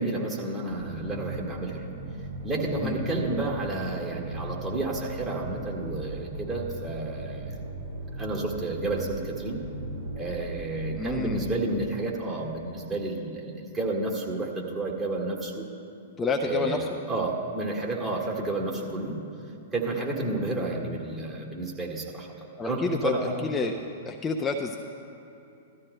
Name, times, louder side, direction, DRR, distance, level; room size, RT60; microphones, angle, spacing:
voice 1, 0.0-1.9 2.4-7.6 8.2-9.6 10.2-15.7 16.4-19.2 19.7-22.3 22.6-23.4, right 2 dB, 20° right, -2 dB, 1.8 m, -31 dB
sound 1, 0.7-11.4, right 1 dB, 65° right, 2.3 m, -38 dB
voice 2, 11.0-11.4 16.2-16.9 22.6-23.1 23.4-23.8 24.1-24.8, left 4 dB, 20° left, 2 dB, 0.5 m, -28 dB
16.0 x 13.5 x 2.2 m, 2.8 s
figure-of-eight pair, 105°, 0 cm